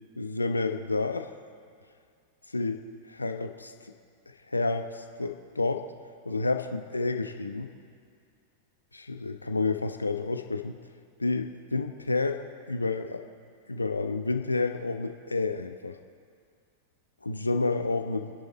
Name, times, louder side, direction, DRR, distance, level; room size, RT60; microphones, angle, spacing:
voice 1, 0.2-1.3 2.5-2.8 3.1-3.7 4.5-5.8 6.2-7.7 8.9-10.7 11.2-12.4 12.7-13.2 13.7-15.9 17.2-18.3, left 3 dB, 90° left, 6 dB, 0.9 m, -29 dB
27.5 x 10.5 x 4.2 m, 2.3 s
figure-of-eight pair, 90°, 0 cm